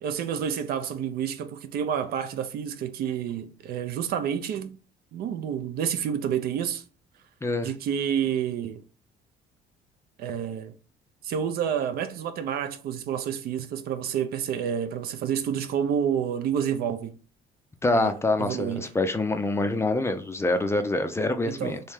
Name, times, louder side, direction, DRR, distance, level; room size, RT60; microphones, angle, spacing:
voice 1, 0.0-4.8 5.1-6.8 7.6-8.8 10.2-10.7 11.2-17.1 17.9-18.9 21.5-21.8, right 8 dB, 65° right, 0.5 m, -29 dB
voice 2, 17.8-21.8, left 2 dB, 15° left, 0.4 m, -25 dB
3.1 x 2.7 x 3.4 m
cardioid pair, 110°, 17 cm